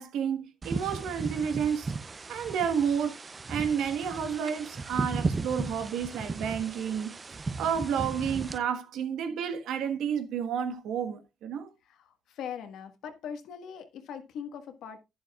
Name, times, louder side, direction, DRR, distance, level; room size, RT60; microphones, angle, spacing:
voice 1, 0.0-1.9 2.3-3.2 3.5-7.1 7.6-11.7, right 7 dB, 85° right, 1.4 m, -30 dB
sound 1, 0.6-8.6, right 3 dB, 30° right, 0.6 m, -36 dB
voice 2, 11.8-15.0, left 8 dB, 80° left, 1.6 m, -41 dB
11.0 x 10.5 x 2.4 m
cardioid pair, 90°, 0 cm